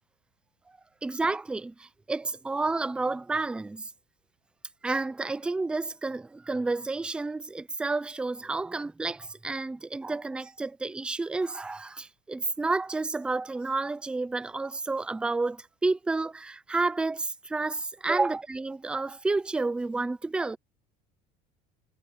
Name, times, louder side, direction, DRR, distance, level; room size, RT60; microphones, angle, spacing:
voice 1, 1.0-3.9 4.8-20.6, right 3 dB, 5° right, 0.4 m, -30 dB
cardioid pair, 165°, 19 cm